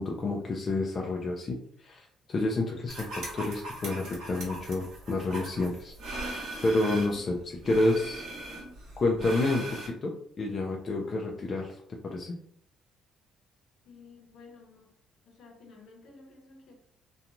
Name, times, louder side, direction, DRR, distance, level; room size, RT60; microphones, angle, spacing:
voice 1, 0.0-5.9 6.6-8.2 9.0-12.4, left 2 dB, 35° left, 0.3 m, -29 dB
sound 1, 2.9-7.2 7.6-9.9, right 2 dB, 80° right, 1.5 m, -39 dB
voice 2, 13.8-14.9 15.2-16.7, left 4 dB, 60° left, 0.8 m, -53 dB
2.8 x 2.2 x 2.5 m
cardioid pair, 135°, 0 cm